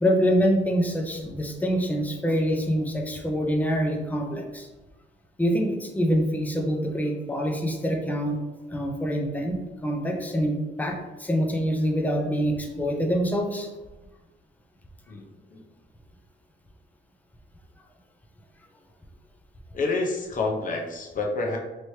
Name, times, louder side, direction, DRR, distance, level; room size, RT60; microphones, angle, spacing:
voice 1, 0.0-4.7 5.4-8.4 8.7-9.6 9.8-13.7, equal, 10° left, 1 dB, 0.6 m, -25 dB
voice 2, 19.7-21.6, left 3 dB, 40° left, 0 dB, 0.7 m, -28 dB
3.2 x 3.0 x 2.8 m, 1.1 s
cardioid pair, 90°, 20 cm